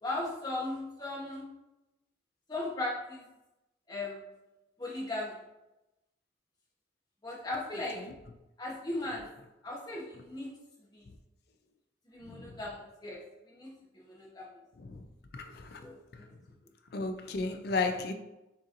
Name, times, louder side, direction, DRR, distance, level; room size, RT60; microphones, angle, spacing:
voice 1, 0.0-1.5 2.5-3.2 3.9-4.1 4.8-5.4 7.2-8.0 8.6-9.3 9.6-10.5 10.9-11.1 12.1-13.2 13.5-14.5 15.8-16.3, left 2 dB, 20° left, -4 dB, 1.0 m, -37 dB
voice 2, 12.3-12.6 14.8-15.1 15.3-15.8 16.1-16.2 16.9-18.1, left 3 dB, 55° left, 6 dB, 0.4 m, -34 dB
6.4 x 3.0 x 2.5 m, 0.97 s
head